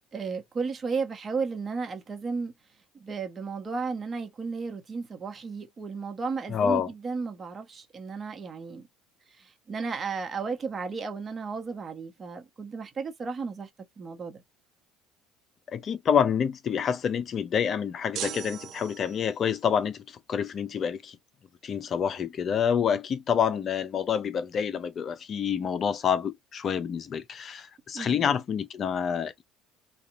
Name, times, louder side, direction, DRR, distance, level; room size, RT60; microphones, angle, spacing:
voice 1, 0.1-2.5 3.0-8.9 9.4-13.7 14.0-14.4 27.9-28.3, right 4 dB, 35° right, 1.0 m, -34 dB
voice 2, 6.5-6.9 15.7-21.2 21.6-29.4, left 7 dB, 45° left, 0.5 m, -27 dB
sound 1, 18.1-19.5, right 10 dB, 60° right, 0.4 m, -38 dB
2.7 x 2.4 x 2.5 m
hypercardioid pair, 70°, 0 cm